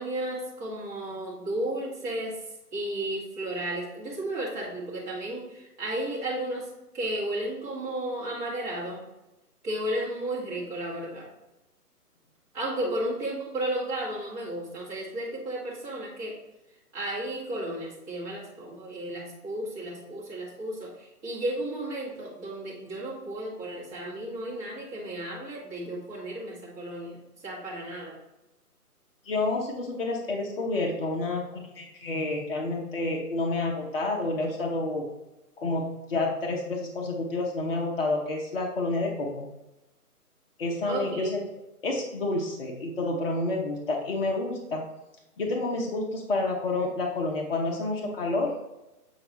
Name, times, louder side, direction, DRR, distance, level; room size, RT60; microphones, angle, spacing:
voice 1, 0.0-2.4 2.7-6.7 6.9-9.0 9.6-11.3 12.5-16.3 16.9-28.2 40.9-41.3, right 1 dB, 15° right, -9 dB, 2.0 m, -33 dB
voice 2, 29.3-35.1 35.6-35.8 36.1-39.4 40.6-41.4 41.8-44.9 45.4-48.5, left 2 dB, 40° left, 0 dB, 0.8 m, -29 dB
7.7 x 4.4 x 3.1 m, 0.96 s
figure-of-eight pair, 155°, 46 cm